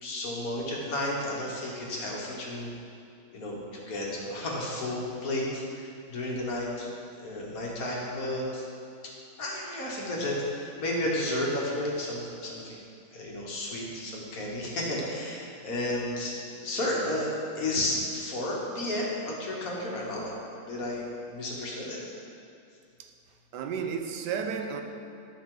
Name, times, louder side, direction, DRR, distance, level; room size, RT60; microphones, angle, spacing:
voice 1, 0.0-2.7 3.3-6.9 7.2-8.6 9.4-12.8 13.1-17.3 17.6-22.0, left 1 dB, 55° left, 1.8 m, -32 dB
voice 2, 23.5-24.8, right 6 dB, 90° right, 1.3 m, -32 dB
12.0 x 6.4 x 3.8 m
omnidirectional pair, 1.8 m